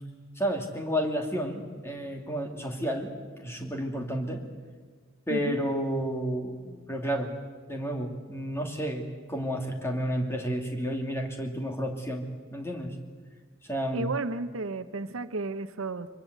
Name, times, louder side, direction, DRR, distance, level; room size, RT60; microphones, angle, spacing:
voice 1, 0.4-3.1 3.4-4.4 5.3-7.3 7.7-12.3 12.5-12.9 13.7-14.1, equal, 10° left, 2 dB, 2.6 m, -31 dB
voice 2, 13.9-16.1, right 3 dB, 75° right, 11 dB, 0.8 m, -33 dB
24.0 x 22.5 x 8.1 m, 1.5 s
head